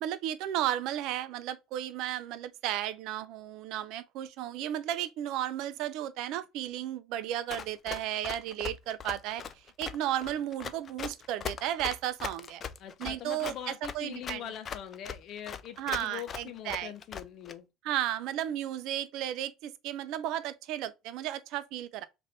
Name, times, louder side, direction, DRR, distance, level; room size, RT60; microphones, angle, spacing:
voice 1, 0.0-9.4 9.8-12.6 13.0-14.4 15.8-16.9 17.8-22.0, right 12 dB, 70° right, 0.4 m, -34 dB
Run, 7.5-17.5, left 7 dB, 35° left, 0.4 m, -40 dB
voice 2, 12.8-17.7, left 10 dB, 55° left, 0.7 m, -42 dB
3.4 x 2.5 x 3.9 m
supercardioid pair, 110°, 0 cm